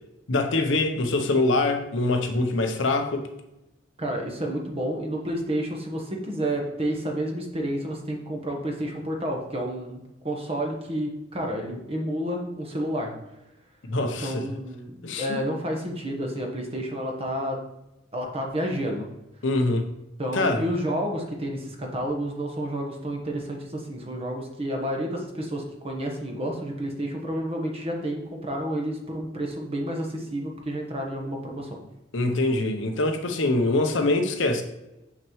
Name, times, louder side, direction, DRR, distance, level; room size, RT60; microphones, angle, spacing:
voice 1, 0.3-3.2 13.9-14.5 15.0-15.4 19.4-19.9 20.3-20.6 32.1-34.6, left 2 dB, 85° left, 0.8 m, -24 dB
voice 2, 4.0-13.1 14.2-17.6 18.1-19.1 20.2-31.8, equal, 30° right, 1.1 m, -30 dB
6.0 x 5.9 x 3.1 m
head